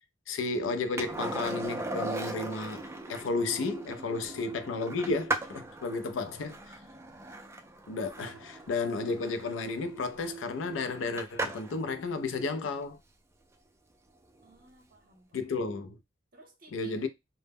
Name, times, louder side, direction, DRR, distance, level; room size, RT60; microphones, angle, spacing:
voice 1, 0.3-6.8 7.9-13.0 15.3-16.0 16.7-17.1, left 3 dB, 70° left, 0.4 m, -33 dB
Skateboard, 1.0-11.8 14.4-14.5, right 2 dB, 15° right, 0.3 m, -39 dB
voice 2, 14.4-15.5 16.3-16.9, right 2 dB, 50° right, 0.7 m, -58 dB
2.0 x 2.0 x 3.3 m
head